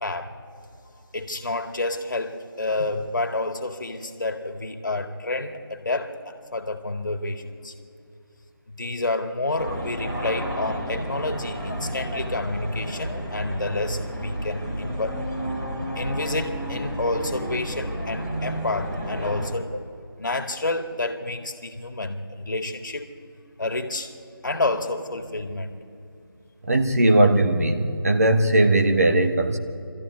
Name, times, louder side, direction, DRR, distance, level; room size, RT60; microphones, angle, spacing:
voice 1, 0.0-0.3 1.1-7.7 8.8-15.2 16.0-19.7 20.2-23.1 23.6-24.1 24.4-25.8, left 2 dB, 55° left, 6 dB, 2.0 m, -29 dB
sound 1, 9.6-19.5, equal, 10° right, 1.8 m, -31 dB
voice 2, 26.6-29.6, right 1 dB, 40° right, 5 dB, 1.5 m, -19 dB
25.0 x 14.0 x 9.5 m, 2.5 s
figure-of-eight pair, 175°, 12 cm